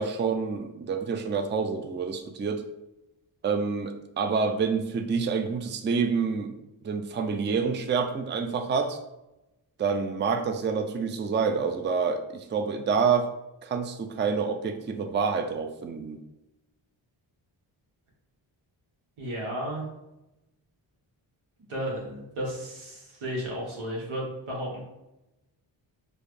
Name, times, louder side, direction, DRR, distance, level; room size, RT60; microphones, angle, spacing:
voice 1, 0.0-2.6 3.4-6.6 6.8-9.0 9.8-13.3 13.6-16.2, right 5 dB, 25° right, 7 dB, 0.4 m, -27 dB
voice 2, 19.2-19.8 21.7-24.8, equal, 90° right, -3 dB, 1.4 m, -33 dB
4.7 x 2.6 x 3.3 m, 0.94 s
cardioid pair, 55°, 48 cm